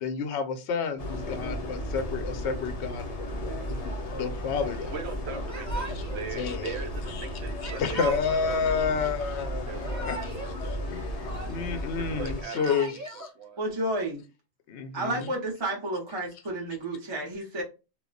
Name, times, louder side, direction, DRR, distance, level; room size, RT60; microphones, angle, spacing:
voice 1, 0.0-5.0 6.3-6.8 7.1-7.3 7.6-10.2 10.6-13.3 14.7-15.3, left 6 dB, 80° left, 0.9 m, -31 dB
sound 1, 1.0-12.4, left 1 dB, 45° left, 0.5 m, -34 dB
voice 2, 4.8-8.7 9.7-10.6 12.0-13.6, right 6 dB, 75° right, 0.8 m, -40 dB
Yell / Crying sobbing, 5.5-6.3 7.6-8.6 9.6-10.5 10.8-11.8 12.3-13.3, right 4 dB, 15° right, 1.2 m, -39 dB
voice 3, 13.6-14.2 14.9-17.6, right 1 dB, 30° right, 0.6 m, -31 dB
2.3 x 2.1 x 3.8 m
omnidirectional pair, 1.1 m